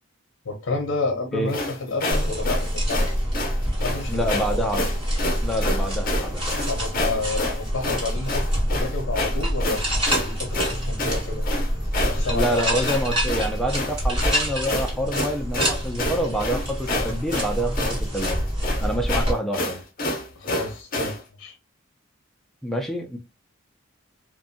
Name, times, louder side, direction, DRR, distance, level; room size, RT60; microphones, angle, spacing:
voice 1, 0.4-3.0 3.8-4.6 6.7-8.4 8.7-9.8 10.1-11.5 11.9-12.7 20.4-21.6, left 3 dB, 85° left, 0.6 m, -30 dB
sound 1, 1.5-21.2, left 2 dB, 45° left, 0.7 m, -29 dB
sound 2, 2.1-19.3, equal, 25° right, 1.1 m, -26 dB
voice 2, 4.1-4.9 5.4-6.5 12.3-18.5 18.8-19.8 22.6-23.2, right 1 dB, ahead, 0.4 m, -27 dB
2.5 x 2.2 x 2.5 m
head